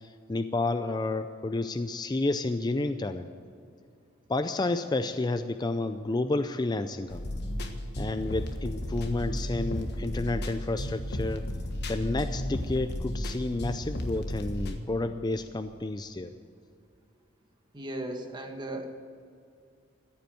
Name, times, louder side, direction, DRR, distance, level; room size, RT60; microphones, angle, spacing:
voice 1, 0.0-3.3 4.3-7.2 8.0-11.4 11.9-16.3, left 2 dB, 20° left, 9 dB, 0.4 m, -30 dB
sound 1, 7.1-14.8, left 1 dB, 55° left, 1.4 m, -33 dB
voice 2, 17.7-18.9, right 1 dB, 20° right, 3 dB, 1.5 m, -36 dB
14.5 x 8.3 x 9.1 m, 2.4 s
head